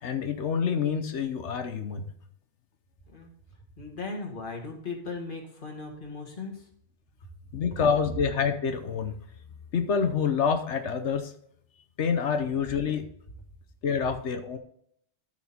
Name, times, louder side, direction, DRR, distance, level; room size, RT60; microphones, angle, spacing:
voice 1, 0.0-2.0 7.5-9.1 9.7-11.3 12.0-13.0 13.8-14.6, left 6 dB, 75° left, 8 dB, 1.2 m, -27 dB
voice 2, 3.8-6.7, left 4 dB, 45° left, 1 dB, 2.1 m, -37 dB
13.5 x 4.5 x 4.2 m, 0.69 s
omnidirectional pair, 1.2 m